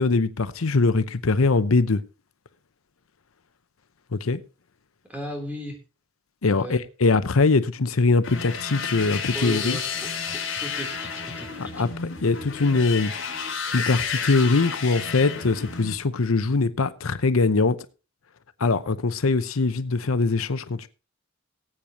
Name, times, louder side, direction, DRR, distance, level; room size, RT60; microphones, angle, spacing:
voice 1, 0.0-2.0 4.1-4.4 6.4-9.8 11.6-11.9 12.2-13.1 13.7-17.8 18.6-20.9, left 3 dB, 90° left, 0.8 m, -22 dB
voice 2, 5.1-5.8 6.5-6.8 9.3-11.9, equal, 10° right, 3.5 m, -36 dB
sound 1, 8.2-16.0, left 6 dB, 65° left, 3.6 m, -31 dB
18.5 x 8.7 x 3.0 m
head